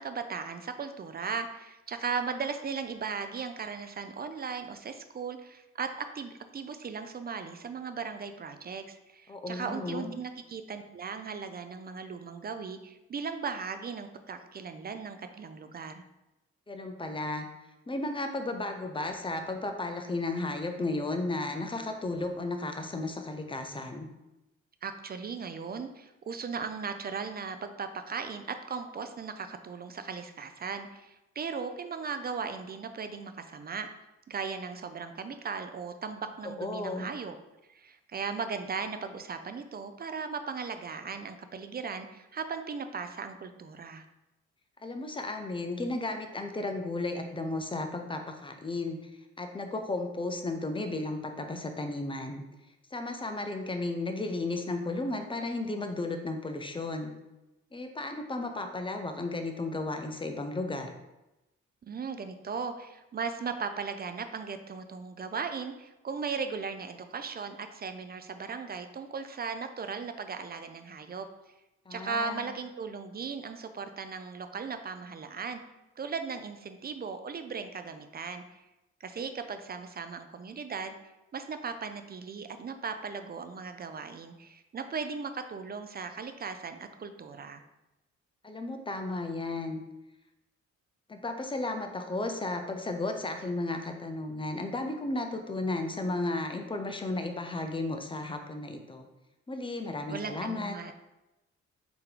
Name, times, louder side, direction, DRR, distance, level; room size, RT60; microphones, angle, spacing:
voice 1, 0.0-16.0 24.8-33.9 34.3-37.3 37.7-44.0 61.8-71.3 71.9-75.6 76.0-78.7 79.0-80.9 81.3-87.6 100.1-100.9, right 5 dB, 35° right, 8 dB, 0.4 m, -37 dB
voice 2, 9.3-10.1 16.7-17.5 17.9-24.1 36.6-37.1 44.8-49.1 49.4-52.4 52.9-57.1 57.7-60.9 71.9-72.5 88.4-89.8 91.1-99.1 99.5-100.8, left 2 dB, 15° left, 5 dB, 0.5 m, -34 dB
3.6 x 2.9 x 3.7 m, 0.96 s
cardioid pair, 75°, 30 cm